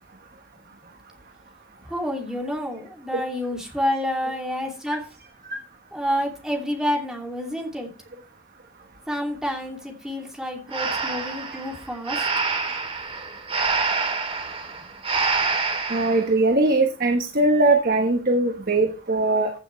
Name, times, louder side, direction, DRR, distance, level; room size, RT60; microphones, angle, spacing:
voice 1, 1.9-5.0 5.9-7.9 9.1-12.2, equal, 5° right, -1 dB, 2.6 m, -28 dB
Breathing, 10.7-16.2, right 4 dB, 30° right, 3.1 m, -26 dB
voice 2, 15.9-19.5, right 2 dB, 45° right, 4 dB, 1.3 m, -20 dB
15.5 x 7.1 x 3.3 m, 0.34 s
head